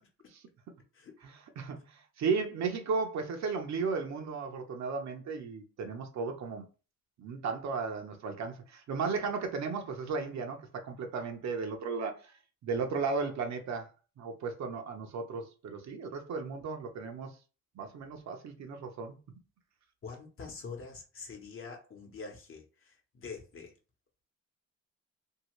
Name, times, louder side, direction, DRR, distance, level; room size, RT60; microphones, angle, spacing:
voice 1, 1.2-6.6 7.2-12.3 12.6-13.9 14.2-17.3 17.8-19.2, right 5 dB, 65° right, 0.7 m, -35 dB
voice 2, 20.0-23.7, left 4 dB, 45° left, 1.0 m, -45 dB
2.7 x 2.7 x 3.1 m
cardioid pair, 90°, 30 cm